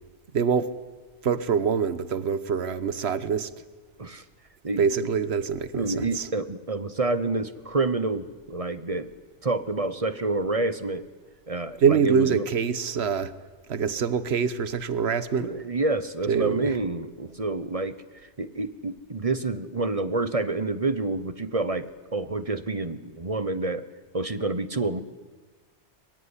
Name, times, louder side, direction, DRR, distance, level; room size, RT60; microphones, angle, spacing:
voice 1, 0.3-0.7 1.2-3.5 4.8-6.3 11.8-13.3 13.7-15.5 16.3-16.8, right 6 dB, 65° right, 1.3 m, -25 dB
voice 2, 5.7-9.1 9.4-11.0 11.5-12.5 15.4-17.9 18.4-23.8 24.1-25.0, right 3 dB, 30° right, 1.1 m, -28 dB
23.0 x 23.0 x 9.8 m
omnidirectional pair, 1.2 m